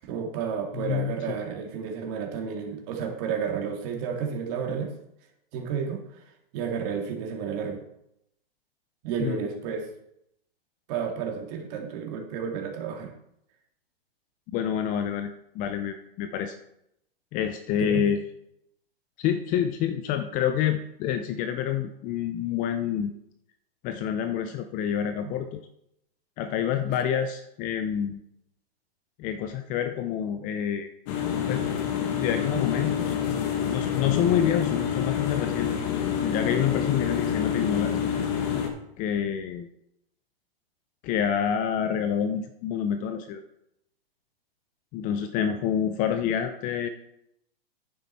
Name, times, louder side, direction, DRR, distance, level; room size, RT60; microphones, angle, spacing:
voice 1, 0.0-4.9 5.5-6.2 6.5-7.8 9.0-9.9 10.9-13.1 17.8-18.0 25.2-25.3, right 6 dB, 40° right, 2 dB, 2.1 m, -31 dB
voice 2, 0.7-1.4 9.2-9.5 14.5-16.5 17.3-18.2 19.2-23.1 23.8-25.6 26.4-28.2 29.2-30.9 31.5-31.6 32.2-33.2 33.7-35.7 36.2-37.9 39.0-39.7 41.0-43.4 44.9-46.9, left 9 dB, 25° left, 8 dB, 0.6 m, -27 dB
sound 1, 31.1-38.7, left 8 dB, 40° left, 1.7 m, -27 dB
9.9 x 7.5 x 4.2 m, 0.79 s
hypercardioid pair, 130°, 30 cm